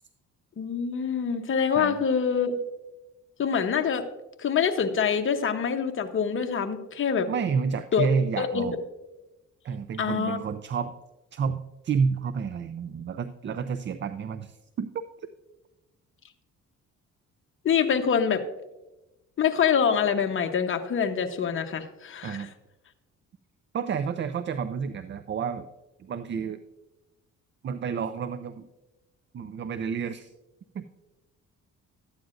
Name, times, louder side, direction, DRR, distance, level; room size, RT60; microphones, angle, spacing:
voice 1, 0.6-2.6 3.4-4.0 4.4-7.3 7.9-8.1 8.4-8.6 10.0-10.4 17.6-18.4 19.4-22.4, left 7 dB, 45° left, 5 dB, 0.9 m, -25 dB
voice 2, 7.3-8.8 9.6-10.9 11.3-14.9 15.2-15.3 22.2-22.5 23.7-25.7 26.0-26.6 27.6-28.7 29.3-30.3 30.7-30.8, right 6 dB, 40° right, 12 dB, 0.5 m, -30 dB
13.0 x 9.3 x 2.5 m, 1.0 s
cardioid pair, 90°, 30 cm